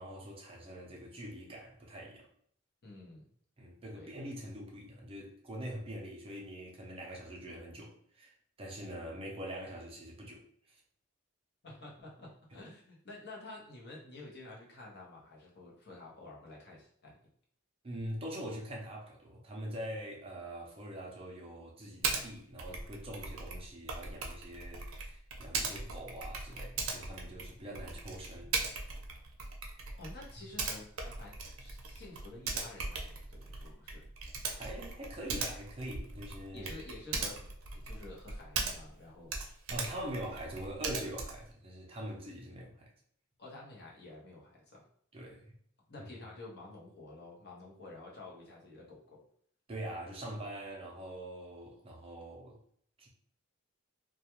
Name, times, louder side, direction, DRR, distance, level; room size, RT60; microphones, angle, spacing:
voice 1, 0.0-2.3 3.6-10.8 12.5-12.6 17.8-28.5 34.5-36.7 39.7-42.9 45.1-45.5 46.0-46.1 49.7-52.6 53.0-53.1, right 1 dB, 25° right, 0.5 m, -44 dB
voice 2, 2.8-3.3 3.9-4.2 11.6-17.2 30.0-34.1 36.5-37.5 37.8-39.6 43.4-44.8 45.9-49.2, left 2 dB, 55° left, 0.8 m, -50 dB
Typing, 22.0-22.2 22.6-39.0 39.3-41.5, right 4 dB, 80° right, 0.5 m, -39 dB
2.3 x 2.2 x 2.9 m
head